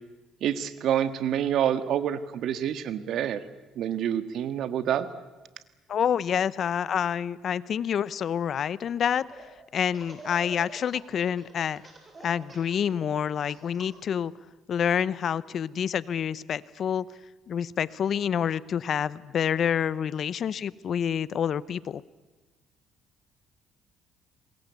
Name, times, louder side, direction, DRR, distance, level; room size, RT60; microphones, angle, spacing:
voice 1, 0.4-3.4 3.7-5.1, right 10 dB, 70° right, 12 dB, 1.6 m, -27 dB
voice 2, 5.9-9.2 9.7-11.8 12.2-14.3 14.7-17.1 17.5-22.0, left 8 dB, 55° left, 19 dB, 0.8 m, -27 dB
Laughter, 8.9-9.5 9.9-14.1, right 3 dB, 30° right, 7.2 m, -47 dB
27.5 x 22.0 x 8.3 m, 1.2 s
cardioid pair, 85°, 0 cm